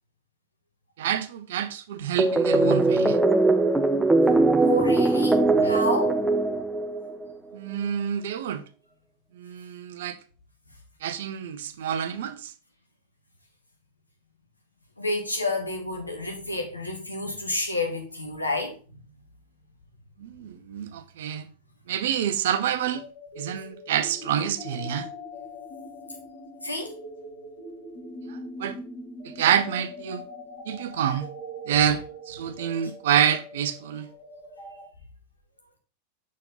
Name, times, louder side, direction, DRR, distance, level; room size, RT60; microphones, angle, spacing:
voice 1, 1.0-3.2 7.5-8.6 9.3-10.2 11.0-12.5 20.2-21.5 21.9-23.1 23.4-25.1 28.3-28.8 29.2-30.2 30.7-31.3 31.7-34.1, right 9 dB, 55° right, 0.6 m, -27 dB
sound 1, 2.2-7.3, right 2 dB, 10° right, 0.4 m, -21 dB
voice 2, 4.5-6.2 15.0-19.0 26.6-26.9, left 2 dB, 85° left, 1.4 m, -30 dB
sound 2, 22.9-34.8, left 1 dB, 45° left, 1.9 m, -42 dB
6.1 x 4.5 x 3.8 m
figure-of-eight pair, 90°, 0 cm